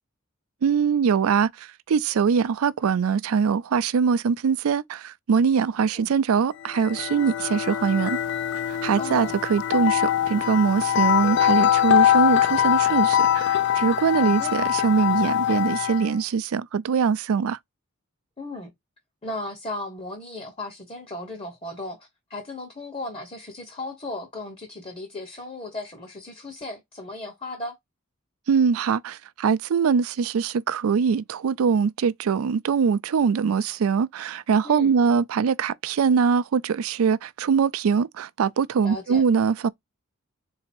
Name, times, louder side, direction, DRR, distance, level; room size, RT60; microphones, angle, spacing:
voice 1, 0.6-8.2 8.7-17.6 28.5-39.7, right 6 dB, 90° right, 0.4 m, -22 dB
sound 1, 6.6-16.1, left 11 dB, 55° left, 0.3 m, -23 dB
voice 2, 9.0-9.3 14.2-14.5 18.4-18.7 19.2-27.8 34.6-34.9 38.8-39.2, left 2 dB, 30° left, 1.0 m, -36 dB
3.9 x 2.7 x 4.3 m
head